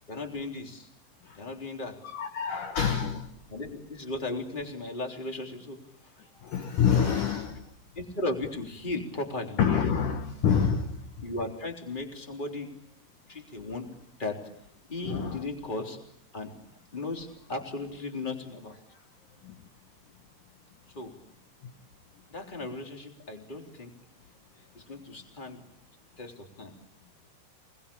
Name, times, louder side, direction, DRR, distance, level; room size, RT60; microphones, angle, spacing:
voice 1, 0.1-0.9 1.4-2.0 3.5-6.6 7.9-9.6 11.2-12.7 13.3-13.9 14.2-14.4 14.9-16.0 16.3-16.5 16.9-18.8 20.9-21.1 22.3-23.9 24.6-25.6 26.2-26.7, left 2 dB, 10° left, 2.9 m, -36 dB
voice 2, 2.1-3.3 6.4-7.7 9.6-11.2 15.0-15.4 19.4-19.5, left 7 dB, 70° left, 2.0 m, -27 dB
28.5 x 21.0 x 8.7 m
omnidirectional pair, 5.5 m